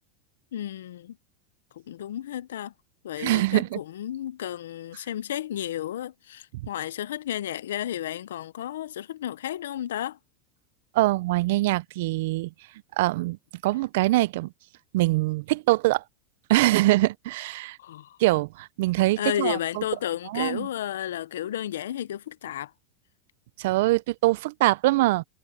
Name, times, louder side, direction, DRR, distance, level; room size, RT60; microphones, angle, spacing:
voice 1, 0.5-1.2 1.9-2.7 3.0-10.2 17.8-18.2 19.2-22.7, left 11 dB, 85° left, 0.6 m, -32 dB
voice 2, 3.2-3.8 10.9-12.5 13.0-13.4 13.6-14.5 14.9-16.0 16.5-17.8 18.2-19.8 20.3-20.7 23.6-25.2, right 18 dB, 70° right, 0.4 m, -23 dB
hypercardioid pair, 110°, 0 cm